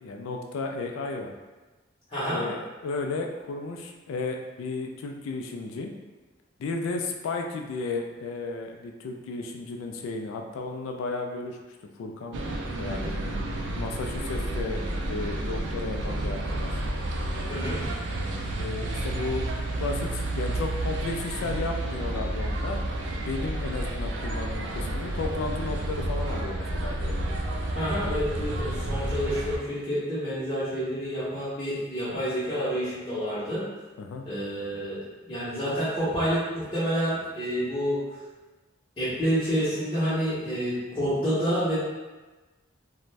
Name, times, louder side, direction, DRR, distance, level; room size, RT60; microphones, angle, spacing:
voice 1, 0.0-1.3 2.3-5.9 6.6-11.6 12.0-12.4 12.8-13.2 13.8-14.8 15.1-16.8 18.6-22.8 23.1-27.2 34.0-34.3, left 3 dB, 90° left, 2 dB, 0.3 m, -34 dB
voice 2, 2.1-2.5 17.5-17.9 27.8-33.6 34.2-38.0 39.0-41.8, equal, 25° left, -13 dB, 0.7 m, -28 dB
sound 1, 12.3-29.6, right 1 dB, 60° right, 0.3 m, -30 dB
2.5 x 2.1 x 3.1 m, 1.2 s
head